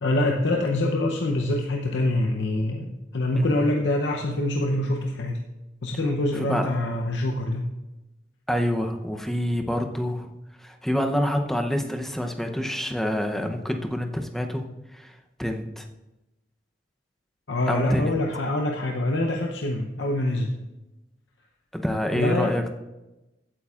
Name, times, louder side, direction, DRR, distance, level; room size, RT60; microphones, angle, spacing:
voice 1, 0.0-5.4 5.8-7.7 17.5-20.5 22.1-22.6, left 1 dB, 80° left, 1 dB, 0.7 m, -25 dB
voice 2, 3.3-3.7 6.4-6.7 8.5-10.3 10.6-14.7 14.9-15.9 17.7-18.2 21.7-22.7, equal, ahead, 4 dB, 0.7 m, -27 dB
15.5 x 8.6 x 2.4 m, 1.0 s
head